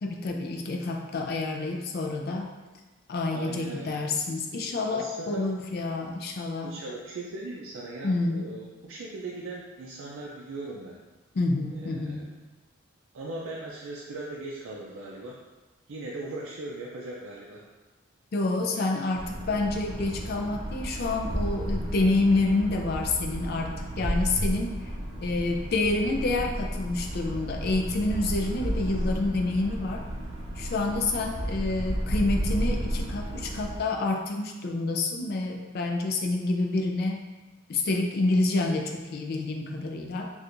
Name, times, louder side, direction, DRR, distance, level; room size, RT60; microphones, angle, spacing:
voice 1, 0.0-2.5 3.1-6.8 8.0-8.4 11.3-12.3 18.3-24.8 25.2-30.0 30.6-37.2 37.7-40.3, left 2 dB, 50° left, 3 dB, 0.4 m, -28 dB
voice 2, 3.3-4.0 4.9-5.4 6.6-11.0 11.7-12.3 13.1-15.4 15.9-17.6, right 2 dB, 75° right, -3 dB, 0.4 m, -39 dB
sound 1, 19.1-33.8, equal, 20° right, 0.5 m, -32 dB
4.3 x 2.4 x 2.5 m, 1.2 s
head